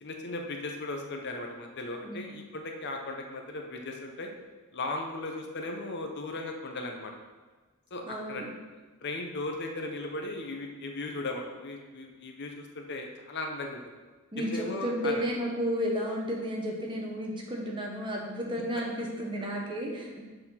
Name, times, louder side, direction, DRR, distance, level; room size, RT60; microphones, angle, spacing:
voice 1, 0.0-4.3 4.7-7.1 7.9-8.4 9.0-13.8 14.4-15.3 19.4-19.5, left 2 dB, 50° left, 3 dB, 0.8 m, -37 dB
voice 2, 2.0-2.4 8.1-8.5 14.3-20.2, equal, 20° right, -1 dB, 1.1 m, -32 dB
6.8 x 4.3 x 5.7 m, 1.3 s
head